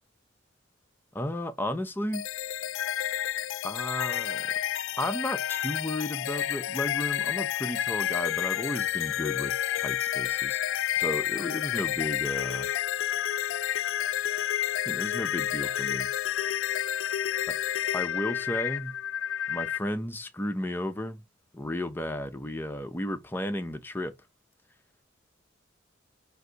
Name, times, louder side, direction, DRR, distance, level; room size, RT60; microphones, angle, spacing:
voice 1, 1.1-2.2 3.6-4.5 5.0-10.6 10.9-12.7 14.9-16.1 17.9-18.9 19.5-21.2 21.5-24.1, left 1 dB, 10° left, 0.4 m, -33 dB
sound 1, 2.1-19.8, left 11 dB, 75° left, 0.3 m, -30 dB
3.9 x 2.6 x 4.5 m
head